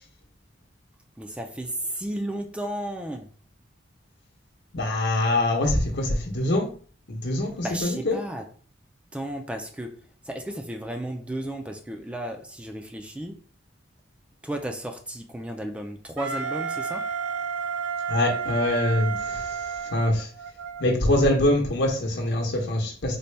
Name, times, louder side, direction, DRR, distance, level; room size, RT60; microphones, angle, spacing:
voice 1, 1.2-3.3 7.6-8.4 9.1-13.4 14.4-17.0, right 1 dB, 5° right, 4 dB, 0.3 m, -33 dB
voice 2, 4.7-6.7 7.1-8.2 18.1-20.3 20.8-23.2, left 1 dB, 65° left, 2 dB, 0.8 m, -24 dB
Wind instrument woodwind instrument, 16.2-20.9, right 6 dB, 75° right, 0.4 m, -31 dB
4.0 x 2.2 x 3.3 m, 0.42 s
head